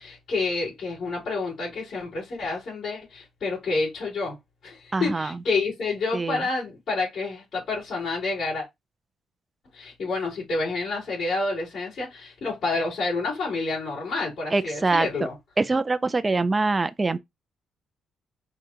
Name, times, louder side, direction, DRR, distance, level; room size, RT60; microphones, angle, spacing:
voice 1, 0.0-4.4 4.6-8.7 9.7-15.3, left 3 dB, 60° left, 3.3 m, -29 dB
voice 2, 4.9-5.4 6.1-6.4 14.5-15.1 15.6-17.2, right 3 dB, 25° right, 0.5 m, -24 dB
5.0 x 2.4 x 4.4 m
cardioid pair, 90°, 0 cm